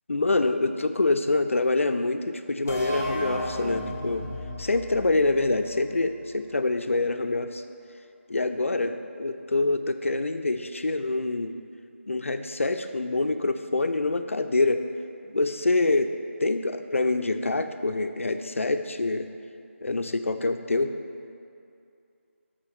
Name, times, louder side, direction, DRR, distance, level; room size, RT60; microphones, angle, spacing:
voice 1, 0.1-4.3 4.6-7.6 8.3-11.5 12.1-14.8 15.3-16.1 16.4-19.3 19.8-20.9, left 2 dB, 70° left, 7 dB, 0.5 m, -26 dB
sound 1, 2.7-6.2, equal, 10° left, 0.3 m, -34 dB
12.0 x 4.4 x 4.4 m, 2.5 s
figure-of-eight pair, 175°, 7 cm